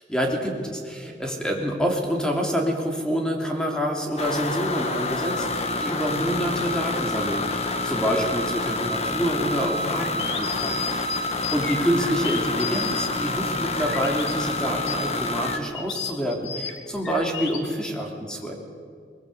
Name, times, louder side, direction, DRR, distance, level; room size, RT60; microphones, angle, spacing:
voice 1, 0.1-10.8 11.5-18.5, equal, 5° left, 1 dB, 3.2 m, -27 dB
sound 1, 4.2-15.6, left 2 dB, 40° left, 1.5 m, -28 dB
sound 2, 9.4-14.3 14.8-17.6, left 7 dB, 80° left, 2.5 m, -34 dB
21.0 x 21.0 x 8.1 m, 2.2 s
head